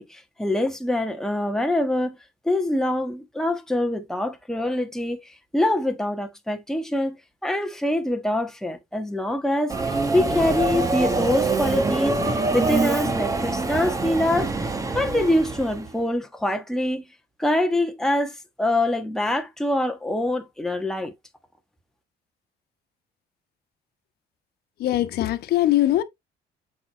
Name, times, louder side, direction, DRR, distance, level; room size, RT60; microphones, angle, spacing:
voice 1, 0.0-2.2 2.4-7.2 7.4-14.5 14.9-17.0 17.4-21.1, left 1 dB, 5° left, 1.3 m, -25 dB
Subway metro underground, 9.7-15.9, right 3 dB, 20° right, 1.1 m, -25 dB
voice 2, 24.8-26.0, left 14 dB, 70° left, 1.1 m, -21 dB
7.5 x 4.9 x 3.0 m
cardioid pair, 110°, 17 cm